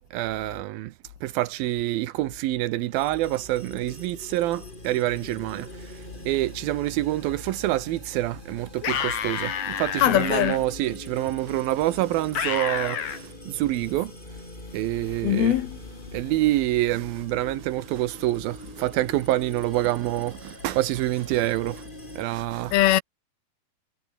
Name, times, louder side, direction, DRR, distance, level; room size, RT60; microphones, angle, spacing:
voice 1, 0.1-0.9 1.2-5.7 6.3-14.1 14.7-15.6 16.1-21.8 22.2-22.7, right 16 dB, 75° right, 2.6 m, -26 dB
sound 1, 2.9-22.3, left 1 dB, 10° left, 6.2 m, -43 dB
sound 2, 8.8-10.6 12.4-13.2, left 8 dB, 55° left, 3.5 m, -29 dB
voice 2, 10.0-10.6 15.2-15.8 22.7-23.0, left 14 dB, 80° left, 3.1 m, -21 dB
omnidirectional pair, 4.4 m